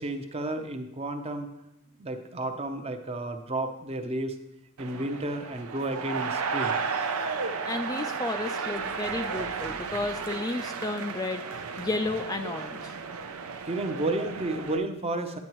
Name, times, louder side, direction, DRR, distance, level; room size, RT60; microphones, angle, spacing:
voice 1, 0.0-1.5 2.0-4.4 4.8-6.8 13.6-15.4, right 2 dB, 30° right, 7 dB, 0.7 m, -32 dB
sound 1, 4.8-14.8, right 5 dB, 85° right, 0.6 m, -33 dB
voice 2, 7.7-11.4 11.8-12.9, left 2 dB, 15° left, 7 dB, 0.3 m, -32 dB
9.4 x 8.4 x 3.0 m, 0.86 s
head